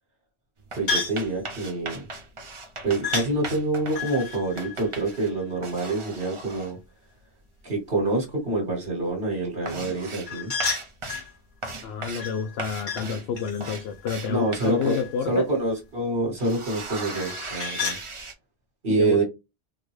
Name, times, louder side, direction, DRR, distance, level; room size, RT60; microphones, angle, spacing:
sound 1, 0.6-5.4 5.6-6.7 7.9-8.0 8.3-8.7 9.0-9.1 9.4-10.3 10.6-11.3 11.6-12.3 12.6-15.1 15.6-15.7 16.1-18.3, right 2 dB, 35° right, 0.7 m, -38 dB
voice 1, 0.8-2.0 2.8-6.8 7.6-10.5 14.3-15.0 15.3-18.0 18.8-19.2, right 2 dB, 60° right, 1.5 m, -26 dB
sound 2, 0.9-1.3 3.0-3.3 3.9-5.7 10.3-11.3 12.2-13.1 13.4-15.3 17.1-18.0, left 4 dB, 50° left, 1.1 m, -32 dB
voice 2, 11.8-15.5 18.9-19.2, left 6 dB, 75° left, 0.8 m, -29 dB
3.7 x 2.2 x 3.1 m
omnidirectional pair, 1.1 m